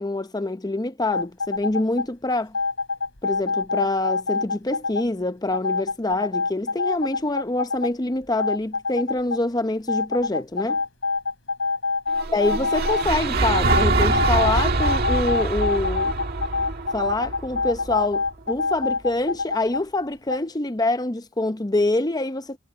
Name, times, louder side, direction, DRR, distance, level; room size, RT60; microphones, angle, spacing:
voice 1, 0.0-2.6 3.2-10.8 12.3-16.1 16.9-22.6, left 2 dB, 20° left, 0.8 m, -25 dB
sound 1, 1.1-2.1 2.5-5.0 5.5-7.9 8.2-9.4 9.9-13.1 13.5-19.8 20.3-20.4, left 4 dB, 70° left, 5.6 m, -26 dB
sound 2, 12.1-18.3, right 3 dB, 50° right, 2.0 m, -24 dB
head